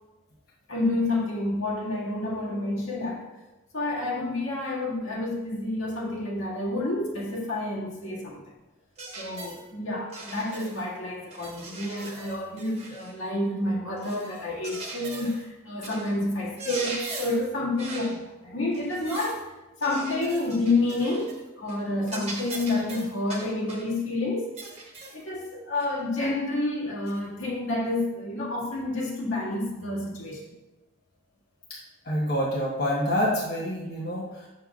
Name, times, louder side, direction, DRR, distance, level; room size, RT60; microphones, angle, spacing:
voice 1, 0.7-3.2 3.7-8.4 9.2-19.5 19.8-24.5 25.1-30.5, left 2 dB, 80° left, -5 dB, 1.9 m, -29 dB
sound 1, 9.0-9.6 10.1-10.9 11.3-13.2 14.0-15.4 15.8-16.1 16.4-17.5 17.8-18.2 18.7-19.4 19.8-21.4 21.7-21.8 22.1-23.9 24.6-25.2 25.8-25.9 27.1-27.2, right 2 dB, 30° right, 1.2 m, -40 dB
voice 2, 32.0-34.5, equal, 50° left, -6 dB, 1.1 m, -27 dB
7.5 x 6.3 x 2.4 m, 1.0 s
head